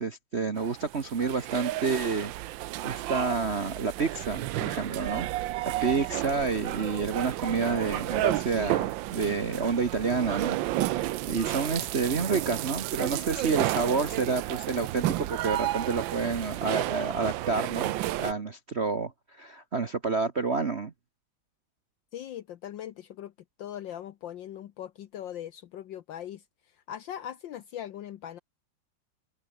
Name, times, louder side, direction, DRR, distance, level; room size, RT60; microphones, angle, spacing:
voice 1, 0.0-2.3 2.8-5.3 5.8-10.6 10.8-20.9, right 4 dB, 35° right, 1.4 m, -29 dB
sound 1, 0.6-18.3, right 15 dB, 75° right, 1.3 m, -32 dB
voice 2, 22.1-23.3 23.6-26.4 26.9-28.4, left 10 dB, 70° left, 1.6 m, -40 dB
open air
omnidirectional pair, 2.2 m